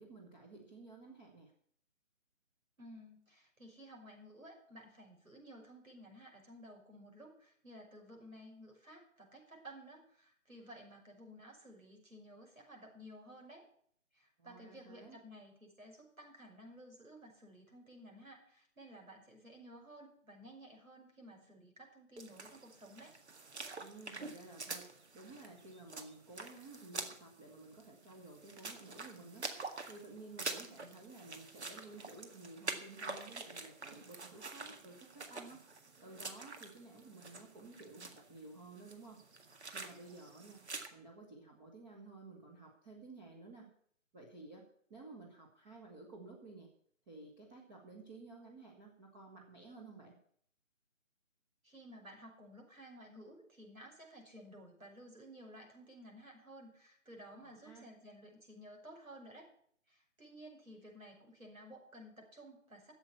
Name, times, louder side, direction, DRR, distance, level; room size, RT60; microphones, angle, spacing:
voice 1, 0.0-1.5 14.4-15.2 23.8-24.9 25.1-29.5 29.9-35.6 36.0-40.6 40.9-43.7 44.1-44.6 44.9-46.7 47.1-50.2 57.3-57.9, right 3 dB, 15° right, -3 dB, 1.4 m, -54 dB
voice 2, 2.8-13.7 14.1-23.2 51.6-59.5 59.9-62.9, equal, 85° right, 0 dB, 6.0 m, -55 dB
sound 1, 22.2-40.9, right 3 dB, 55° right, 1.9 m, -47 dB
12.5 x 8.0 x 8.2 m, 0.62 s
figure-of-eight pair, 150°, 40 cm